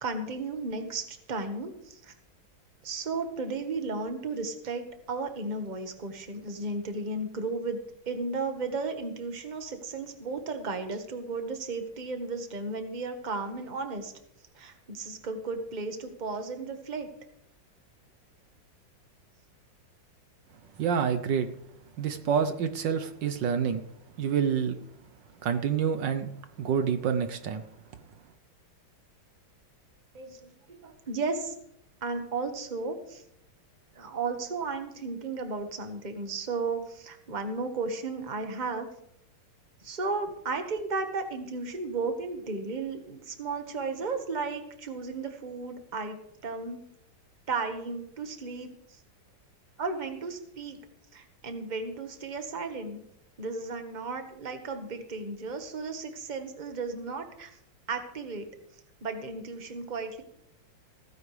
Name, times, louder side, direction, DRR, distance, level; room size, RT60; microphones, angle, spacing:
voice 1, 0.0-2.1 2.8-7.8 8.1-14.1 14.5-17.1 30.1-31.5 32.0-33.2 33.9-38.9 39.8-46.8 47.5-49.0 49.8-50.8 51.1-53.0 53.4-57.5 57.9-58.5 59.0-60.2, right 3 dB, 25° right, 6 dB, 1.4 m, -34 dB
voice 2, 20.8-21.5 22.0-23.8 24.2-24.8 25.4-26.3 26.6-27.7, right 7 dB, 70° right, 10 dB, 1.5 m, -27 dB
17.0 x 15.0 x 3.3 m, 0.75 s
omnidirectional pair, 2.1 m